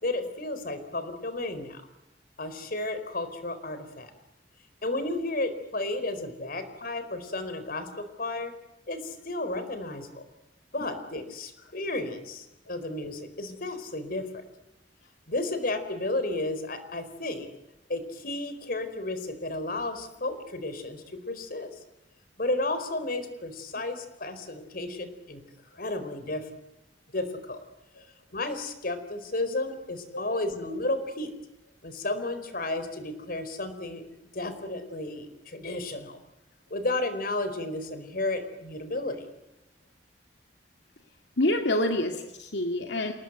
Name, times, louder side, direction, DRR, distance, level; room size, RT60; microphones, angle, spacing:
voice 1, 0.0-1.8 2.4-4.1 4.8-8.5 8.9-10.2 10.7-14.4 15.3-17.5 17.9-21.7 22.4-25.4 25.7-26.5 27.1-27.6 28.3-31.3 31.8-34.0 34.3-36.2 36.7-39.3, left 2 dB, 55° left, 10 dB, 4.4 m, -32 dB
voice 2, 41.4-43.1, left 1 dB, 80° left, 4 dB, 2.3 m, -27 dB
28.5 x 19.5 x 8.1 m, 0.91 s
head